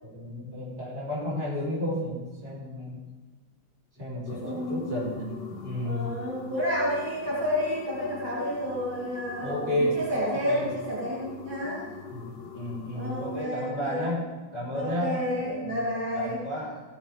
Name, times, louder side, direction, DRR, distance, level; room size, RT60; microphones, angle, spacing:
voice 1, 0.0-3.1 4.0-6.2 9.4-10.0 10.5-10.7 11.6-11.7 12.1-16.8, left 1 dB, 30° right, -7 dB, 5.2 m, -32 dB
voice 2, 4.2-5.1 5.8-11.8 12.9-14.1 14.7-16.4, equal, 70° right, -8 dB, 4.4 m, -30 dB
sound 1, 4.3-13.4, left 6 dB, 60° left, 1.8 m, -44 dB
16.5 x 10.0 x 3.6 m, 1.2 s
omnidirectional pair, 2.3 m